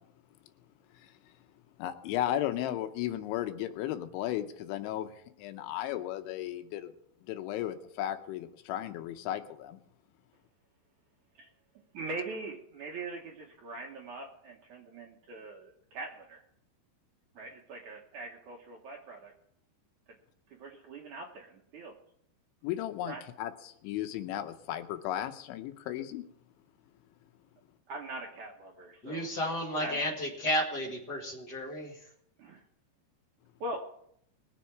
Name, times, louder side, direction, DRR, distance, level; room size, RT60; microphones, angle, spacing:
voice 1, 1.8-5.1 5.4-6.9 7.3-9.8 22.6-26.2, left 12 dB, 85° left, 8 dB, 3.2 m, -35 dB
voice 2, 11.9-16.4 17.3-19.3 20.6-21.9 23.1-23.2 27.9-29.3 29.7-30.1 32.4-32.6 33.6-33.8, right 2 dB, 70° right, 0 dB, 1.8 m, -42 dB
voice 3, 29.0-32.1, equal, 50° left, -1 dB, 1.2 m, -33 dB
21.5 x 7.4 x 4.6 m, 0.69 s
omnidirectional pair, 5.3 m